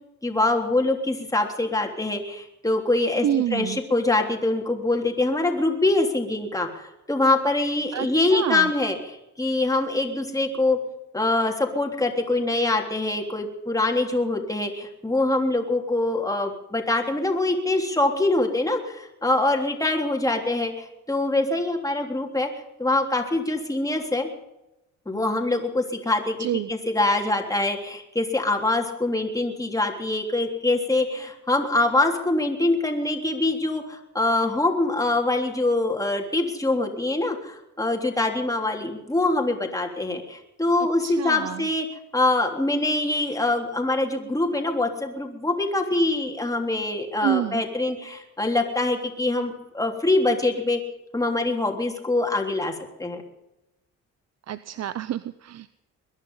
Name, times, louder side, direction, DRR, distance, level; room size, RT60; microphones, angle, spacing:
voice 1, 0.2-3.2 3.5-6.8 7.1-10.8 11.1-22.5 22.8-24.3 25.0-41.9 42.1-50.8 51.1-52.7 53.0-53.2, left 2 dB, 10° left, 3 dB, 3.3 m, -24 dB
voice 2, 3.2-3.8 7.9-8.7 26.4-26.7 41.0-41.7 47.2-47.6 54.5-55.7, right 11 dB, 60° right, 15 dB, 0.7 m, -28 dB
22.0 x 10.5 x 5.5 m, 0.90 s
cardioid pair, 90°, 30 cm